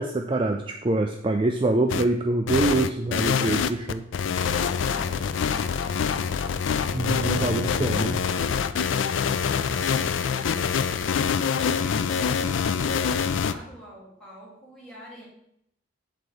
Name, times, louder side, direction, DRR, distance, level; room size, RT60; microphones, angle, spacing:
voice 1, 0.0-4.0 6.9-8.2, right 2 dB, 25° right, 4 dB, 0.4 m, -25 dB
sound 1, 1.9-2.0 2.5-13.5, left 6 dB, 85° left, 0.4 m, -25 dB
voice 2, 4.8-6.3 8.0-15.3, equal, 5° left, -7 dB, 2.6 m, -47 dB
7.9 x 3.9 x 4.8 m, 0.74 s
head